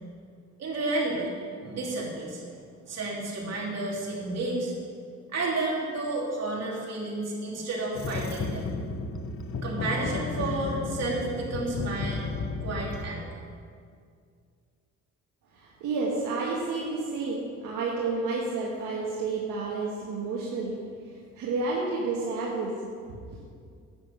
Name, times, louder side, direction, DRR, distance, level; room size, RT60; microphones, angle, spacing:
voice 1, 0.6-1.4 1.6-2.6 2.9-4.7 5.3-8.7 9.6-12.2 12.6-13.3, right 2 dB, 55° right, -4 dB, 3.2 m, -31 dB
sound 1, 7.9-13.0, left 3 dB, 45° left, 1.0 m, -33 dB
voice 2, 15.5-20.8 21.4-22.7 23.3-23.4, right 3 dB, 85° right, -4 dB, 1.7 m, -30 dB
10.5 x 8.3 x 6.0 m, 2.2 s
cardioid pair, 90°, 30 cm